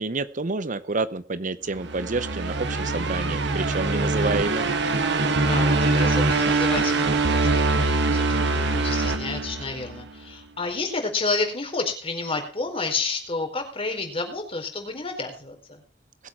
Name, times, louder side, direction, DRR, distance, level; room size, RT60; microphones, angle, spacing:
voice 1, 0.0-4.7, right 3 dB, 45° right, 14 dB, 0.8 m, -28 dB
sound 1, 1.7-10.0, right 3 dB, 70° right, 2.0 m, -23 dB
voice 2, 5.3-15.8, left 3 dB, 30° left, 4 dB, 4.4 m, -30 dB
20.5 x 8.4 x 4.5 m, 0.40 s
head